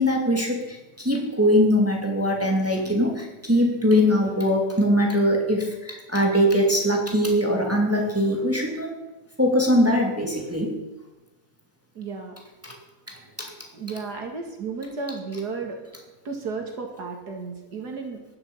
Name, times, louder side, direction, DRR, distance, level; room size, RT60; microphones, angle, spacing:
voice 1, 0.0-8.9 9.4-10.8 12.6-12.8 13.4-13.5, equal, 10° right, 0 dB, 2.5 m, -21 dB
voice 2, 12.0-12.4 13.7-15.8 16.2-18.2, right 4 dB, 80° right, 2 dB, 2.5 m, -33 dB
15.0 x 11.5 x 5.5 m, 1.1 s
omnidirectional pair, 1.7 m